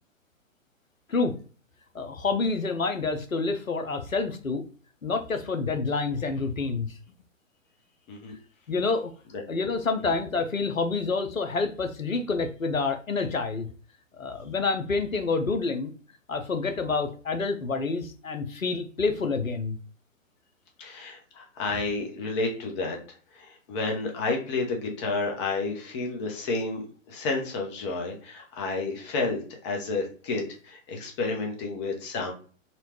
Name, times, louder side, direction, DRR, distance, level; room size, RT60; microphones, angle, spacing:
voice 1, 1.9-4.6 5.0-6.9 8.7-9.1 9.5-13.7 14.2-15.9 16.3-19.8, left 4 dB, 90° left, 7 dB, 0.7 m, -28 dB
voice 2, 20.8-23.0 23.3-32.3, left 3 dB, 20° left, 1 dB, 0.7 m, -31 dB
4.1 x 2.3 x 2.9 m, 0.39 s
figure-of-eight pair, 120°, 39 cm